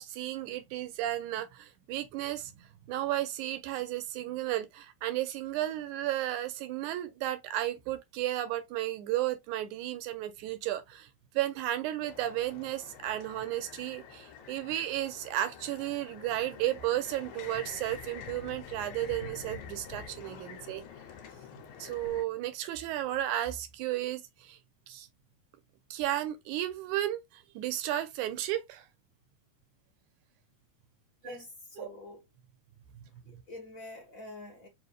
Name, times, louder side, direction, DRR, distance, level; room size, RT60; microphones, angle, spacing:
voice 1, 0.0-20.8 21.5-24.6 24.9-25.1 25.9-28.9 31.2-31.4 31.8-31.9, right 13 dB, 80° right, 2.1 m, -34 dB
sound 1, 12.1-22.2, left 7 dB, 75° left, 2.1 m, -47 dB
voice 2, 31.2-32.2 33.2-34.7, left 2 dB, 55° left, 0.9 m, -46 dB
5.0 x 2.6 x 3.2 m
omnidirectional pair, 3.5 m